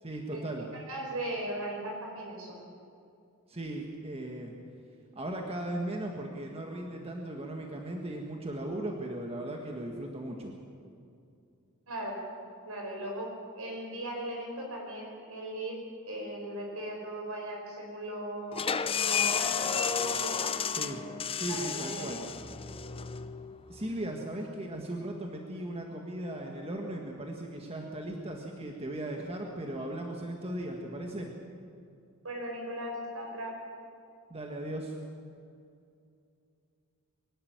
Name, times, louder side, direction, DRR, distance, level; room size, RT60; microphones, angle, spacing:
voice 1, 0.0-0.7 3.5-4.5 5.1-10.5 20.8-21.0 21.4-22.2 23.7-31.3 34.3-34.9, right 1 dB, 25° right, 1 dB, 1.6 m, -37 dB
voice 2, 0.7-2.6 11.9-12.2 12.7-15.7 16.0-18.6 18.9-21.0 21.5-22.2 32.2-33.6, right 1 dB, 70° right, 0 dB, 5.8 m, -38 dB
sound 1, 18.5-24.0, left 7 dB, 25° left, 0.6 m, -32 dB
23.0 x 12.0 x 9.4 m, 2.5 s
head